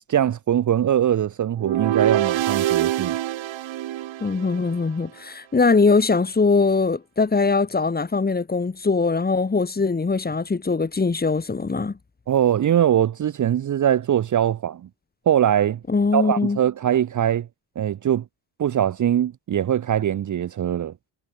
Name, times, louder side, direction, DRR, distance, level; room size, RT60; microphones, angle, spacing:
voice 1, 0.1-3.2 12.3-14.9 15.3-15.8 16.1-17.5 17.8-18.2 18.6-20.9, right 10 dB, 40° right, 0.8 m, -21 dB
sound 1, 1.6-4.8, right 13 dB, 75° right, 2.7 m, -25 dB
voice 2, 4.2-12.0 15.9-16.6, left 4 dB, 20° left, 3.0 m, -21 dB
cardioid pair, 150°, 46 cm